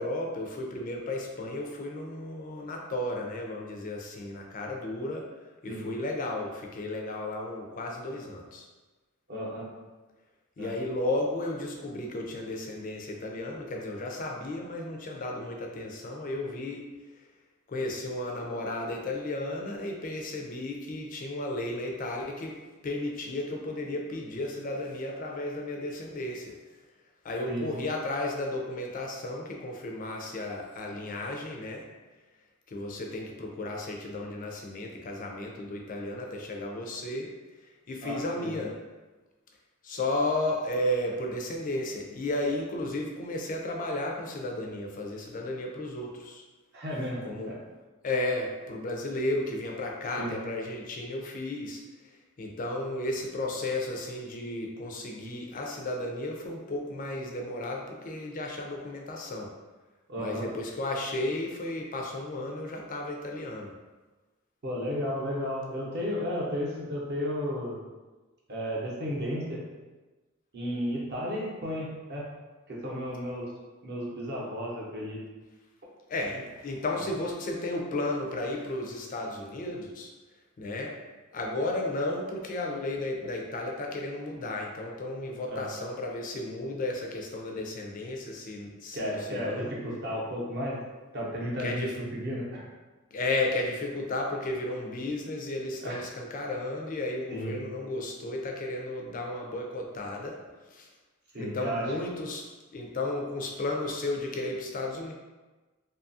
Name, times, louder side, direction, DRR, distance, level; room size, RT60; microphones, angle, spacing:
voice 1, 0.0-5.3 5.6-8.7 10.6-16.8 17.7-22.6 22.8-26.6 27.2-31.8 32.7-37.3 37.9-38.8 39.8-46.4 47.2-47.5 48.0-51.8 52.4-59.5 60.2-63.7 76.1-80.1 80.6-80.9 81.3-89.7 91.6-91.9 93.1-100.4 100.7-100.9 101.3-102.4 102.7-105.1, left 2 dB, 40° left, 1 dB, 0.4 m, -33 dB
voice 2, 9.3-9.7 10.6-10.7 27.5-27.7 38.0-38.5 46.7-47.6 50.2-50.4 60.1-60.5 64.6-67.8 68.5-69.6 70.5-72.2 72.7-73.5 73.8-75.2 85.5-85.7 88.9-90.8 91.1-92.6 95.8-96.0 97.3-97.6 101.3-101.9, equal, 50° right, -4 dB, 0.7 m, -33 dB
2.7 x 2.4 x 2.6 m, 1.2 s
head